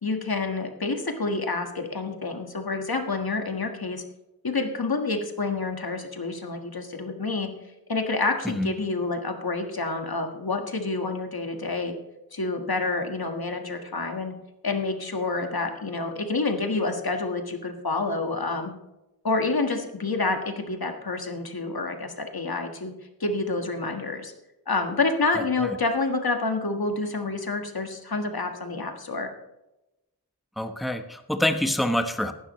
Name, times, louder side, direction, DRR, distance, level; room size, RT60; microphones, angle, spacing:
voice 1, 0.0-4.0 4.4-7.5 7.9-11.9 12.3-14.3 14.6-18.7 19.2-22.9 23.2-24.3 24.7-29.3, left 3 dB, 75° left, 4 dB, 1.7 m, -28 dB
voice 2, 30.6-32.3, left 1 dB, ahead, 7 dB, 1.1 m, -26 dB
15.0 x 12.0 x 3.2 m, 0.95 s
wide cardioid pair, 50°, 37 cm